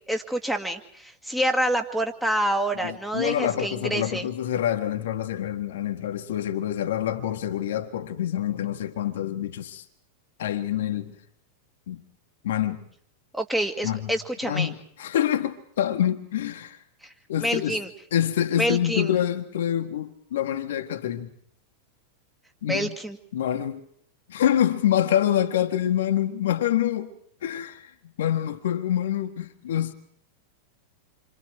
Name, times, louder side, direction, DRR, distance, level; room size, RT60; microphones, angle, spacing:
voice 1, 0.0-4.3 13.3-14.7 17.0-17.1 17.4-17.9 18.6-19.1 22.7-23.2, right 1 dB, 5° right, 2.1 m, -27 dB
voice 2, 2.8-9.8 10.4-11.2 11.9-12.0 12.4-12.8 13.8-14.2 14.4-16.8 17.3-17.8 18.1-21.3 22.6-22.9 23.3-23.8 24.3-27.1 27.4-27.9 28.2-29.9, left 11 dB, 60° left, 1.6 m, -26 dB
28.5 x 25.5 x 4.7 m
figure-of-eight pair, 90°, 0 cm